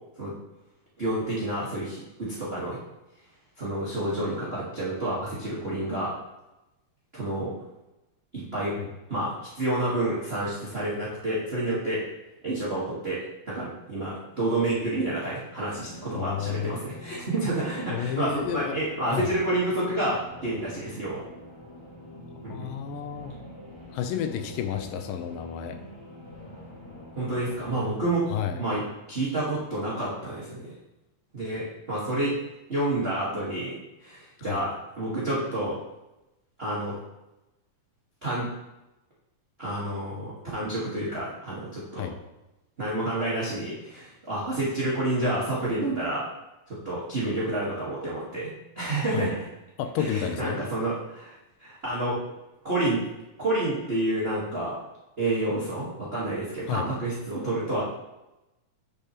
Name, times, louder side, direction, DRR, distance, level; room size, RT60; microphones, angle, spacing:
voice 1, 1.0-2.8 3.6-6.1 7.1-7.5 8.3-8.7 9.1-12.0 12.4-21.2 22.4-22.7 27.2-28.3 28.6-28.8 29.1-30.7 31.3-32.3 32.7-33.7 34.0-35.8 36.6-36.9 38.2-38.4 39.6-42.1 42.8-46.2 46.7-48.5 48.7-49.5 50.0-51.3 51.6-52.2 52.6-53.0 53.4-54.8 55.2-57.8, right 1 dB, 80° right, -8 dB, 0.5 m, -29 dB
sound 1, 15.7-28.9, left 1 dB, 15° left, 1.2 m, -45 dB
voice 2, 16.1-16.8 17.9-18.8 19.1-19.3 22.5-23.3 23.9-25.8 28.3-28.6 34.4-34.7 42.0-42.2 49.1-49.3 49.8-50.6 56.7-56.9, left 9 dB, 85° left, 7 dB, 2.4 m, -31 dB
8.1 x 6.8 x 2.9 m, 0.98 s
omnidirectional pair, 3.8 m